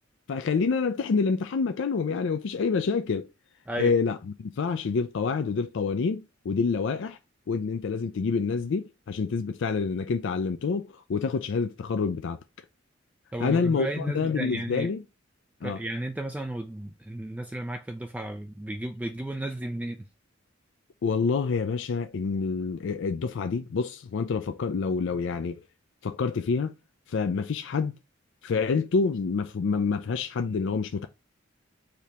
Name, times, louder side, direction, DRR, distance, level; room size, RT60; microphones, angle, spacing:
voice 1, 0.3-3.3 3.8-7.2 7.5-12.4 13.4-15.0 15.6-15.8 21.0-25.6 26.0-26.7 27.1-27.9 28.4-31.1, left 5 dB, 65° left, 0.4 m, -27 dB
voice 2, 13.3-14.9 15.6-20.1, right 1 dB, 10° right, 0.3 m, -34 dB
5.1 x 2.9 x 3.3 m
head